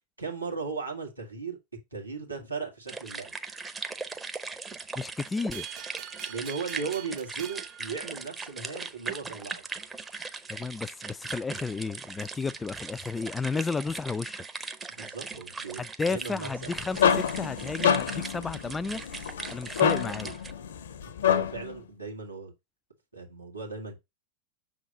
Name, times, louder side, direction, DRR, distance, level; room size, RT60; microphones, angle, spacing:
voice 1, 0.2-1.6 1.9-3.3 6.3-9.6 14.9-15.8 16.1-16.5 21.0-22.5 23.1-24.0, right 5 dB, 85° right, 2.1 m, -37 dB
sound 1, 2.9-20.5, right 4 dB, 15° right, 0.7 m, -39 dB
voice 2, 5.0-5.7 10.5-14.4 15.8-19.0 19.5-20.4, left 4 dB, 15° left, 0.3 m, -33 dB
sound 2, 5.5-8.8, right 12 dB, 50° right, 0.8 m, -45 dB
sound 3, 16.5-21.7, left 8 dB, 60° left, 0.6 m, -27 dB
6.4 x 3.8 x 5.3 m
figure-of-eight pair, 90°, 0 cm